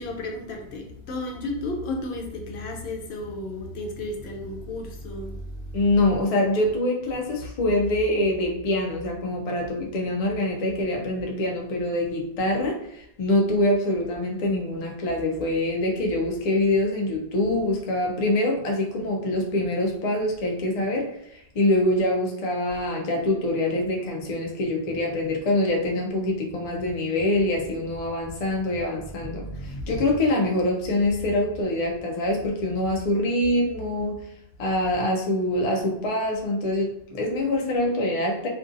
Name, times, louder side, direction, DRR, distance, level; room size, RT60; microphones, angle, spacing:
voice 1, 0.0-5.8 25.2-25.3 29.2-30.1, left 1 dB, 80° left, 1 dB, 0.8 m, -33 dB
voice 2, 5.7-34.2 34.6-38.5, left 1 dB, 50° left, 0 dB, 0.5 m, -25 dB
2.5 x 2.2 x 2.5 m, 0.76 s
omnidirectional pair, 1.1 m